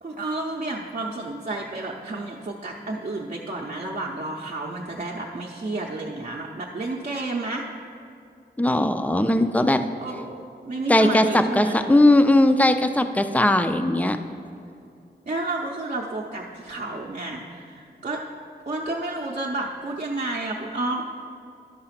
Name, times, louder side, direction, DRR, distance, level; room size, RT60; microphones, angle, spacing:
voice 1, 0.0-7.7 10.0-11.9 15.3-18.2 18.7-21.0, right 2 dB, 45° right, -3 dB, 0.7 m, -31 dB
voice 2, 8.6-9.8 10.9-14.2, left 1 dB, 10° left, 8 dB, 0.4 m, -19 dB
11.5 x 4.8 x 5.8 m, 2.5 s
wide cardioid pair, 115°, 18 cm